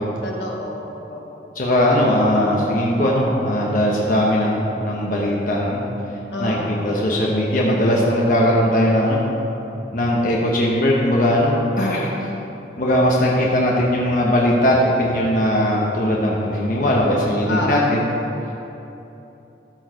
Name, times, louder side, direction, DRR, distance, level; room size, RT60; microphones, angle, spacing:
voice 1, 0.2-1.5 6.3-6.9 17.5-18.0, left 1 dB, 80° left, -1 dB, 1.3 m, -29 dB
voice 2, 1.5-5.8 6.4-6.6 6.8-9.3 9.9-12.3 12.8-18.0, left 1 dB, 50° left, -3 dB, 0.9 m, -19 dB
13.0 x 4.6 x 4.6 m, 3.0 s
head